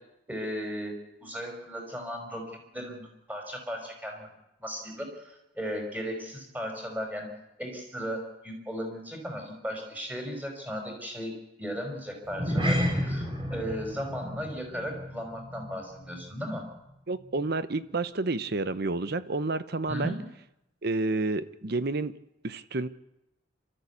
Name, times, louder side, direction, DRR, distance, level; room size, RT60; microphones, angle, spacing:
voice 1, 0.3-0.9 1.2-2.4 2.7-4.3 4.6-7.3 7.6-11.3 11.6-13.2 13.5-16.6 19.9-20.2, equal, 10° right, 2 dB, 5.2 m, -36 dB
sound 1, 12.2-16.9 17.1-17.4 17.9-18.0, equal, 25° right, 4.6 m, -32 dB
voice 2, 17.1-20.2 20.8-22.2 22.4-22.9, right 3 dB, 55° right, 13 dB, 0.9 m, -30 dB
27.5 x 13.5 x 8.3 m, 0.88 s
head